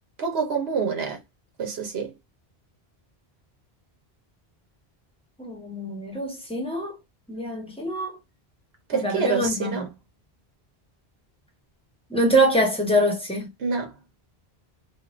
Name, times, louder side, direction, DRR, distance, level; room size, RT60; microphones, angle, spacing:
voice 1, 0.2-1.2 1.6-2.1 8.9-9.9 13.6-13.9, right 6 dB, 75° right, 1.1 m, -26 dB
voice 2, 5.4-7.0 7.3-8.2 8.9-9.7 12.1-13.5, right 1 dB, 5° left, 1.0 m, -24 dB
2.6 x 2.5 x 3.0 m
omnidirectional pair, 1.1 m